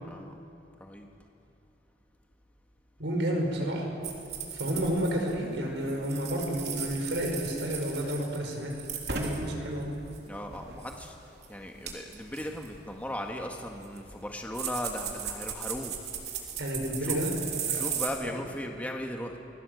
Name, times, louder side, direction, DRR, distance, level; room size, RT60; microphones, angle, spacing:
voice 1, 0.0-0.3 0.8-1.1 10.2-11.2 11.5-16.0 17.0-17.2 17.7-19.4, left 1 dB, 10° left, 2 dB, 1.6 m, -37 dB
voice 2, 3.0-3.9 4.5-8.8 9.1-9.9 16.6-17.8 18.2-18.3, equal, 90° right, 1 dB, 5.6 m, -31 dB
sound 1, 4.0-5.6 5.9-9.5 9.8-11.1 11.4-11.5 11.9-18.1, right 7 dB, 65° right, 3.6 m, -37 dB
29.5 x 21.0 x 8.0 m, 2.6 s
head